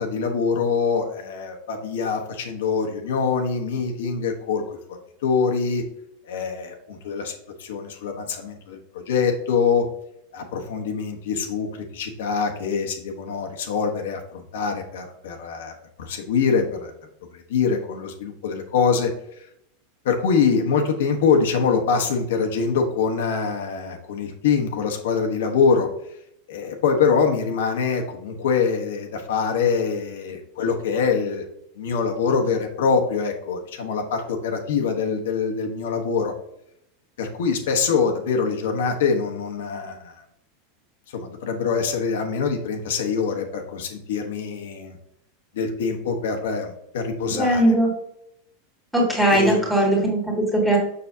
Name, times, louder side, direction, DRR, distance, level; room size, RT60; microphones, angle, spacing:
voice 1, 0.0-5.8 6.2-7.3 7.6-9.8 10.3-15.7 16.0-16.9 17.3-19.1 19.4-19.5 20.0-25.9 26.5-31.4 31.8-36.3 37.2-40.2 41.1-45.0 45.5-47.7 49.3-49.6, left 5 dB, 75° left, 3 dB, 1.1 m, -24 dB
voice 2, 47.3-47.9 48.9-50.8, right 1 dB, ahead, -2 dB, 1.7 m, -19 dB
6.8 x 6.3 x 2.7 m, 0.75 s
supercardioid pair, 180°, 0 cm